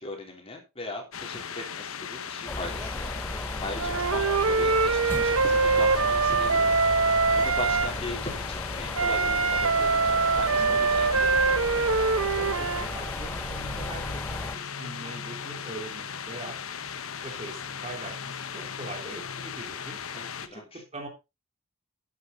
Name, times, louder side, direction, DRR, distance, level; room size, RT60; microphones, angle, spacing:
voice 1, 0.0-3.1 3.6-6.8 7.3-11.3 20.1-20.8, left 2 dB, 25° left, 1 dB, 3.7 m, -39 dB
sound 1, 1.1-20.5, left 7 dB, 75° left, 1.1 m, -37 dB
sound 2, 2.5-14.6, left 1 dB, 10° left, 0.7 m, -35 dB
Wind instrument woodwind instrument, 3.8-7.9 8.9-12.9, right 4 dB, 80° right, 1.1 m, -23 dB
voice 2, 12.3-16.6 17.0-20.0 20.5-21.1, right 2 dB, 30° right, 3 dB, 3.1 m, -42 dB
11.0 x 9.4 x 4.1 m, 0.26 s
head